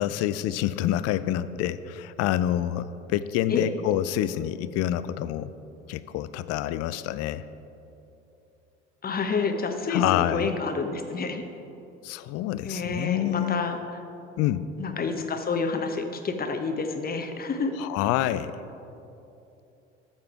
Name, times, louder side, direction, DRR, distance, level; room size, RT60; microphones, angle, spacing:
voice 1, 0.0-5.5 5.9-7.4 9.9-10.5 12.0-13.6 14.4-14.7 17.8-18.6, left 12 dB, 50° left, 14 dB, 0.5 m, -27 dB
voice 2, 9.0-11.4 12.6-13.8 14.8-17.7, left 4 dB, 30° left, 6 dB, 1.1 m, -29 dB
13.5 x 6.8 x 4.6 m, 2.8 s
figure-of-eight pair, 65°, 32 cm